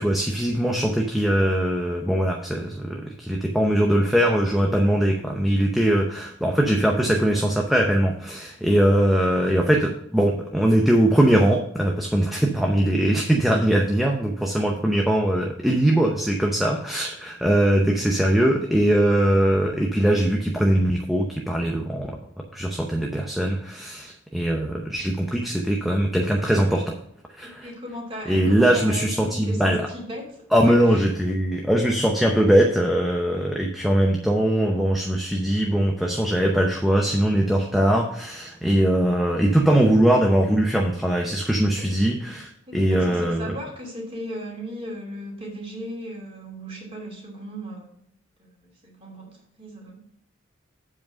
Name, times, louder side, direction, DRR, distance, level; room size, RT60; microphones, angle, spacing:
voice 1, 0.0-22.2 22.5-26.9 27.4-27.7 28.3-29.8 30.5-43.6, right 1 dB, ahead, 1 dB, 0.7 m, -21 dB
voice 2, 27.4-30.2 30.5-31.0 41.8-41.9 42.3-42.4 42.7-48.0 48.4-50.0, equal, 25° right, -1 dB, 2.7 m, -37 dB
8.2 x 4.8 x 6.2 m, 0.72 s
head